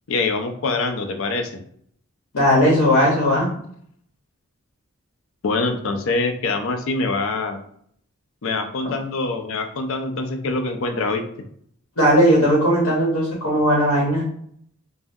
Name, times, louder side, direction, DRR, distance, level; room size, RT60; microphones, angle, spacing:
voice 1, 0.1-1.6 5.4-7.6 8.4-11.2, left 3 dB, 65° left, 7 dB, 0.4 m, -24 dB
voice 2, 2.3-3.5 12.0-14.2, equal, 90° left, -4 dB, 1.0 m, -17 dB
3.5 x 2.1 x 2.6 m, 0.65 s
head